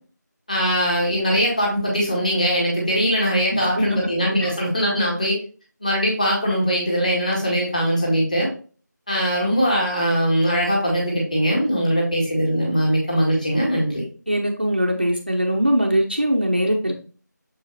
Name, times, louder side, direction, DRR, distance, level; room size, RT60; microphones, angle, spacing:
voice 1, 0.5-5.4 5.8-8.5 9.1-14.0, equal, 25° left, -3 dB, 1.8 m, -21 dB
voice 2, 3.5-4.0 4.4-4.5 14.3-17.0, equal, 30° right, 2 dB, 0.6 m, -21 dB
6.9 x 5.1 x 2.7 m, 0.39 s
figure-of-eight pair, 175°, 10 cm